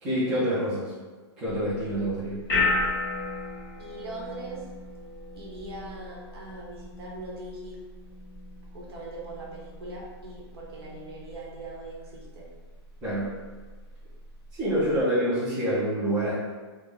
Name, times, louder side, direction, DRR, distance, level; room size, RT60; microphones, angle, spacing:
voice 1, 0.0-0.9 1.4-2.4 13.0-13.3 14.5-16.3, right 1 dB, 5° right, -11 dB, 0.3 m, -26 dB
sound 1, 1.5-15.0, left 3 dB, 15° left, 1.0 m, -35 dB
voice 2, 3.8-4.7 5.3-7.8 8.7-12.5, right 2 dB, 60° right, -3 dB, 0.9 m, -41 dB
3.4 x 2.0 x 3.2 m, 1.4 s
hypercardioid pair, 175°, 15 cm